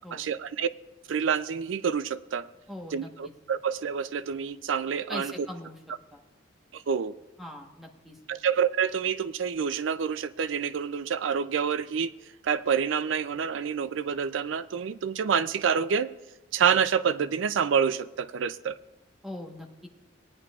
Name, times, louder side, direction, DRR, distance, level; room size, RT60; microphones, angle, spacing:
voice 1, 0.1-0.7 1.1-2.5 2.9-5.5 6.7-7.1 8.3-12.1 12.4-16.1 16.5-18.8, right 7 dB, 90° right, 0.4 m, -27 dB
voice 2, 2.7-3.1 5.1-5.8 6.1-6.2 7.4-8.2 19.2-19.9, left 1 dB, ahead, 1.2 m, -41 dB
19.5 x 9.6 x 2.4 m
head